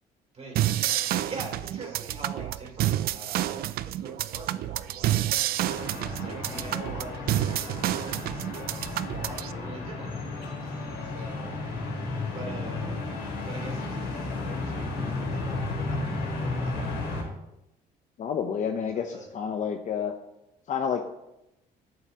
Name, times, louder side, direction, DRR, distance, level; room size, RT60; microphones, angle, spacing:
sound 1, 0.5-9.5, right 13 dB, 65° right, 0.4 m, -29 dB
voice 1, 1.0-5.2 6.2-8.4 8.7-11.6 12.3-17.0 18.9-19.3, right 2 dB, 40° right, 0 dB, 3.0 m, -44 dB
sound 2, 5.6-17.2, left 3 dB, 75° left, 3.1 m, -33 dB
voice 2, 18.2-20.1 20.7-21.0, left 7 dB, 45° left, 5 dB, 0.7 m, -29 dB
10.5 x 8.4 x 2.9 m, 0.89 s
cardioid pair, 110°, 17 cm